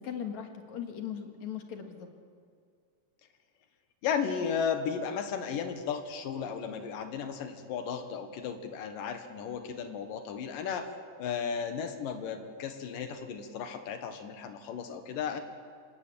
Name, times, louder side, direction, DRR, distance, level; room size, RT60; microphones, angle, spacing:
voice 1, 0.0-2.1, left 8 dB, 60° left, 4 dB, 3.2 m, -39 dB
voice 2, 4.0-10.9 11.2-15.4, left 7 dB, 85° left, 7 dB, 3.1 m, -34 dB
26.5 x 19.0 x 8.6 m, 2.1 s
omnidirectional pair, 3.8 m